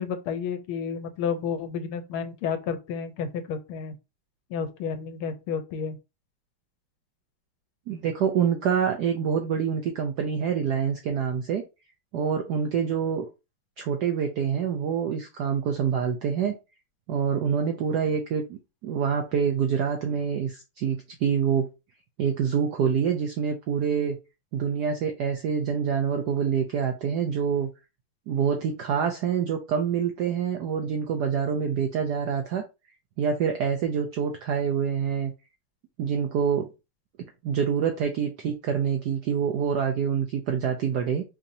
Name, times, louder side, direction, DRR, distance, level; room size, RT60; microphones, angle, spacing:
voice 1, 0.0-3.9 4.5-6.0, left 6 dB, 85° left, 1.5 m, -31 dB
voice 2, 7.9-11.6 12.1-13.3 13.8-16.6 17.1-21.7 22.2-24.2 24.5-27.7 28.3-32.6 33.2-35.3 36.0-36.7 37.4-41.2, right 7 dB, 90° right, 0.9 m, -26 dB
4.9 x 2.7 x 2.6 m
omnidirectional pair, 2.3 m